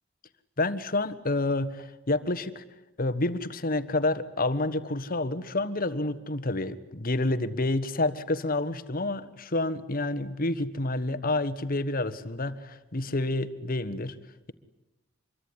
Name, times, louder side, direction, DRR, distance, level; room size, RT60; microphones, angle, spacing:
voice 1, 0.6-2.6 3.0-14.2, left 2 dB, 45° left, 14 dB, 1.5 m, -29 dB
26.0 x 23.0 x 9.9 m, 0.96 s
head